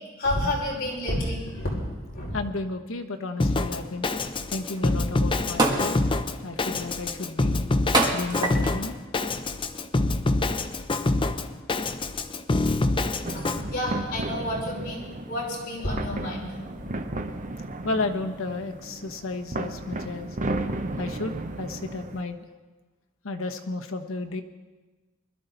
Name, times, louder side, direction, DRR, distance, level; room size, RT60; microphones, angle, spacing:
voice 1, 0.2-1.9 2.1-2.4 13.3-16.5, left 1 dB, 45° left, -4 dB, 5.5 m, -30 dB
voice 2, 2.3-4.1 4.5-6.0 6.4-7.6 8.1-9.0 13.6-13.7 14.3-14.6 17.8-20.3 21.0-22.5 23.2-24.4, left 3 dB, 70° left, 4 dB, 1.1 m, -33 dB
Drum kit, 3.4-13.6, left 2 dB, 25° left, 0.6 m, -26 dB
sound 1, 4.7-4.8 5.6-6.0 6.6-6.9 7.9-8.8 9.6-9.8, right 2 dB, 20° right, 1.5 m, -24 dB
sound 2, 13.2-22.2, right 2 dB, 40° right, 0.8 m, -34 dB
21.0 x 12.5 x 4.0 m, 1.3 s
head